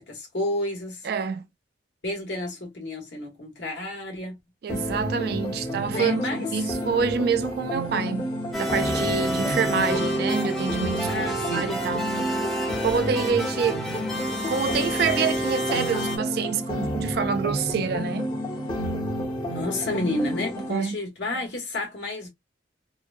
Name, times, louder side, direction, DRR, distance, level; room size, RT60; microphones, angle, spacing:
voice 1, 0.1-1.1 2.0-4.4 5.9-6.5 11.1-11.7 19.5-22.3, left 1 dB, 70° left, 1.2 m, -30 dB
voice 2, 1.0-1.5 4.6-6.2 6.5-8.3 8.6-12.0 12.8-13.9 14.5-18.3 20.7-21.0, right 6 dB, 55° right, 0.3 m, -27 dB
sound 1, 4.7-20.7, equal, 30° left, 1.1 m, -30 dB
sound 2, 8.5-16.2, equal, ahead, 0.6 m, -29 dB
3.1 x 2.1 x 2.4 m
head